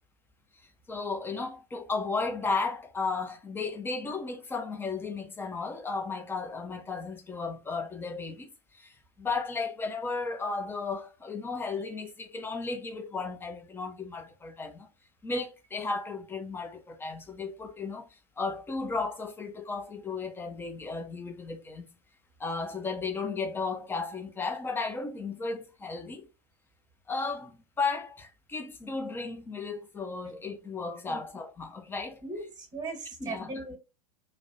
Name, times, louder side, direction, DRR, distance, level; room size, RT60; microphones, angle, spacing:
voice 1, 0.9-14.9 15.2-21.9 22.4-26.3 27.1-32.2 33.2-33.6, left 4 dB, 10° left, 0.4 m, -34 dB
voice 2, 32.2-33.8, right 3 dB, 20° right, 1.0 m, -38 dB
2.4 x 2.0 x 2.6 m
hypercardioid pair, 95°, 20 cm